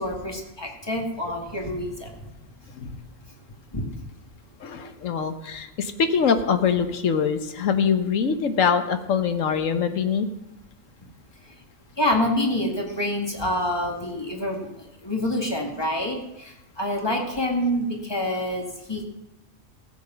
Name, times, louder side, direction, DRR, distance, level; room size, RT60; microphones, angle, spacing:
voice 1, 0.0-2.1 3.7-3.8 12.0-14.7 15.0-16.5 16.8-19.0, left 1 dB, 20° left, 1 dB, 2.0 m, -26 dB
voice 2, 4.6-10.3, left 6 dB, 90° left, 9 dB, 1.3 m, -23 dB
14.5 x 7.8 x 5.7 m, 0.89 s
omnidirectional pair, 1.3 m